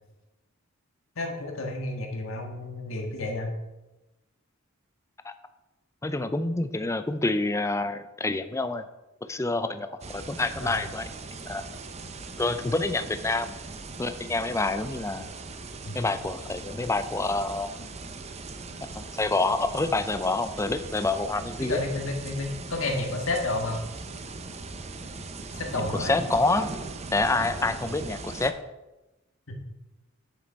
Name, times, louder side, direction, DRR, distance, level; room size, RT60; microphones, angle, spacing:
voice 1, 1.1-3.5 10.6-10.8 15.8-16.0 21.6-23.8 25.5-26.2 29.5-29.6, left 2 dB, 80° left, 2 dB, 1.6 m, -31 dB
voice 2, 6.0-8.9 9.3-11.1 11.5-11.7 12.4-13.5 14.0-15.2 15.9-17.7 18.8-21.8 25.8-26.7 27.1-28.5, left 2 dB, 15° left, 10 dB, 0.5 m, -27 dB
sound 1, 10.0-28.5, right 3 dB, 30° right, 0.7 m, -39 dB
9.2 x 6.5 x 4.6 m, 1.0 s
head